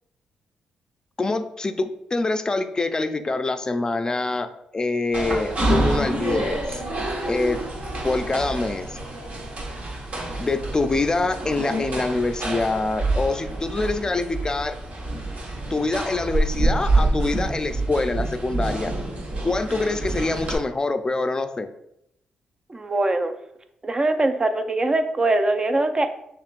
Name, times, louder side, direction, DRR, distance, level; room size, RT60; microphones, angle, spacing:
voice 1, 1.2-6.8 7.3-7.6 8.0-9.0 10.4-14.8 15.7-18.9 19.4-21.7, left 3 dB, 25° left, 9 dB, 0.5 m, -25 dB
sound 1, 5.1-20.5, right 2 dB, 55° right, 1.4 m, -27 dB
voice 2, 22.7-23.3 23.8-26.1, right 2 dB, 30° right, 8 dB, 0.5 m, -22 dB
6.5 x 3.0 x 2.5 m, 0.77 s
supercardioid pair, 60°, 3 cm